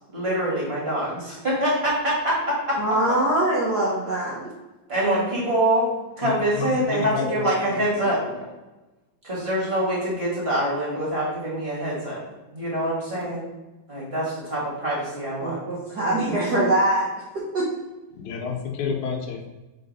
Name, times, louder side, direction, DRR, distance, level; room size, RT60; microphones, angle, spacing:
voice 1, 0.1-2.8 4.9-8.2 9.2-12.2 12.5-13.5 13.9-15.6 16.0-16.5, right 1 dB, 25° right, -5 dB, 1.9 m, -25 dB
voice 2, 2.8-4.5 15.4-17.1 17.5-17.7, right 1 dB, 70° right, -6 dB, 0.9 m, -23 dB
voice 3, 6.2-8.5 18.1-19.5, left 5 dB, 80° left, 2 dB, 2.3 m, -31 dB
4.6 x 4.1 x 5.4 m, 1.1 s
omnidirectional pair, 3.4 m